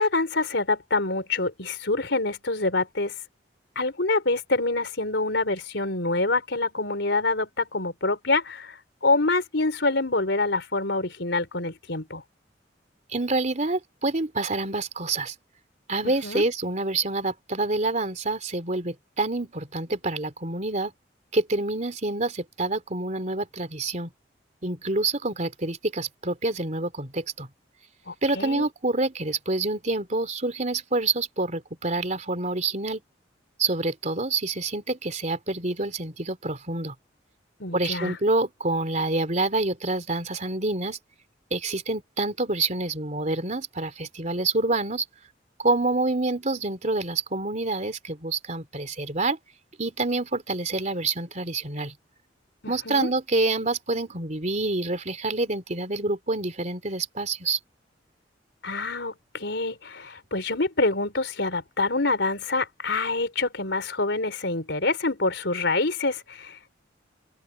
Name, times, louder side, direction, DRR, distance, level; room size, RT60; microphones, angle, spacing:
voice 1, 0.0-3.1 3.8-12.2 16.0-16.4 28.1-28.7 37.6-38.2 52.6-53.1 58.6-66.7, left 3 dB, 70° left, 4.2 m, -26 dB
voice 2, 13.1-15.3 15.9-20.9 21.3-24.1 24.6-27.5 28.2-33.0 33.6-36.9 37.7-41.0 41.5-45.1 45.6-49.4 49.8-51.9 52.7-57.6, right 2 dB, 40° right, 3.5 m, -27 dB
open air
head